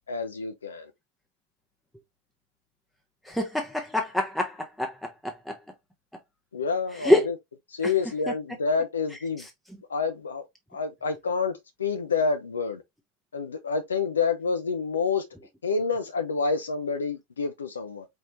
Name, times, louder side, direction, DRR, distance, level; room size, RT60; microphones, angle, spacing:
voice 1, 0.1-0.9 6.5-7.3 7.7-9.5 9.9-10.5 10.7-12.8 13.3-15.3 15.6-18.1, left 5 dB, 70° left, 0.5 m, -28 dB
voice 2, 3.2-5.6 7.0-7.3 7.8-7.9 9.4-9.5, left 1 dB, ahead, 0.7 m, -26 dB
4.4 x 3.0 x 2.6 m
figure-of-eight pair, 90°, 0 cm